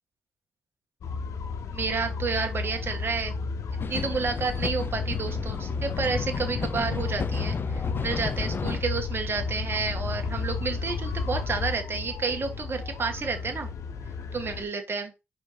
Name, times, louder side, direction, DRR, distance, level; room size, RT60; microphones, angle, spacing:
sound 1, 1.0-14.6, left 5 dB, 75° left, 1.1 m, -33 dB
voice 1, 1.7-3.3 3.9-13.7 14.3-15.1, right 4 dB, 45° right, 5 dB, 1.9 m, -30 dB
sound 2, 3.8-8.8, left 5 dB, 45° left, 0.6 m, -33 dB
5.1 x 3.6 x 5.2 m, 0.26 s
cardioid pair, 65°, 5 cm